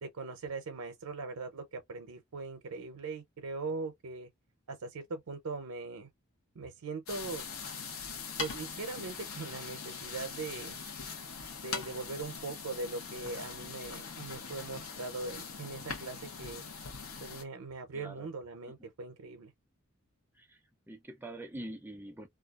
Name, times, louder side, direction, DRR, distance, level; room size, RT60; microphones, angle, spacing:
voice 1, 0.0-4.3 4.7-6.1 6.5-7.4 8.4-10.8 11.6-16.6 17.2-19.5, right 3 dB, 90° right, 0.5 m, -40 dB
sound 1, 7.1-17.4, left 5 dB, 75° left, 0.7 m, -42 dB
voice 2, 17.9-18.3 20.3-20.6 20.9-22.3, right 1 dB, 10° right, 0.4 m, -44 dB
2.3 x 2.2 x 2.3 m
head